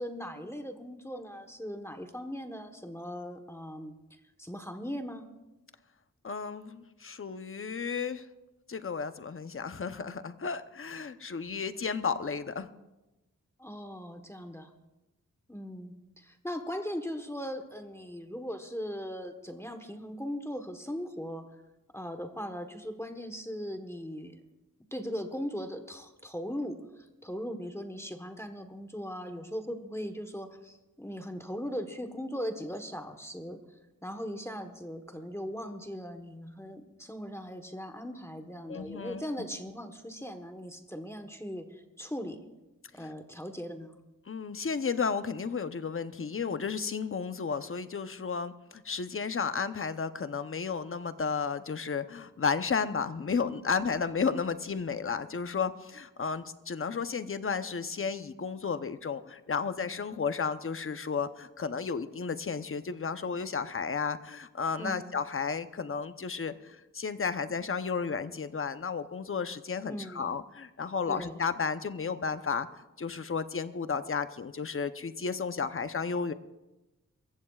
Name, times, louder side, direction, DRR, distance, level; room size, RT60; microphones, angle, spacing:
voice 1, 0.0-3.9 4.4-5.3 13.6-14.7 15.5-21.5 21.9-24.4 24.9-33.6 34.0-42.4 42.9-44.0 64.8-65.1 69.9-70.3 71.1-71.4, equal, 10° left, 6 dB, 1.2 m, -39 dB
voice 2, 6.2-8.2 8.7-12.7 38.7-39.2 43.0-43.1 44.3-76.3, left 5 dB, 40° left, 10 dB, 0.8 m, -33 dB
27.5 x 15.0 x 2.4 m, 1.0 s
wide cardioid pair, 95°, 33 cm